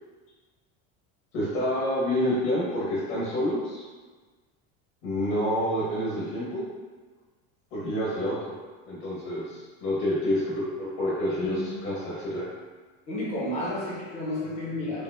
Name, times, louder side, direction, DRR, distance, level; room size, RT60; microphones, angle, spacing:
voice 1, 1.3-3.9 5.0-6.6 7.7-8.5 8.9-12.4, equal, 90° left, -8 dB, 1.3 m, -28 dB
voice 2, 11.4-11.7 13.1-15.0, left 1 dB, 15° left, -5 dB, 0.4 m, -32 dB
4.8 x 2.0 x 2.3 m, 1.4 s
cardioid pair, 175°, 40 cm